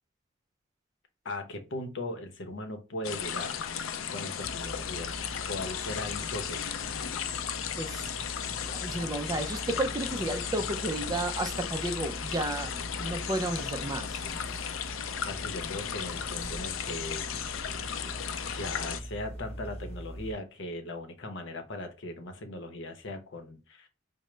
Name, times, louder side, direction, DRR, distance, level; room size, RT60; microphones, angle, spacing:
voice 1, 1.2-3.6 4.1-6.7 15.3-17.3 18.5-23.9, left 1 dB, 65° left, 0.8 m, -39 dB
sound 1, 3.0-19.0, left 8 dB, 90° left, 0.4 m, -35 dB
sound 2, 4.4-20.3, equal, 30° left, 0.9 m, -43 dB
voice 2, 7.8-8.1 8.7-14.2, right 2 dB, 20° right, 0.4 m, -32 dB
4.9 x 2.1 x 3.2 m
head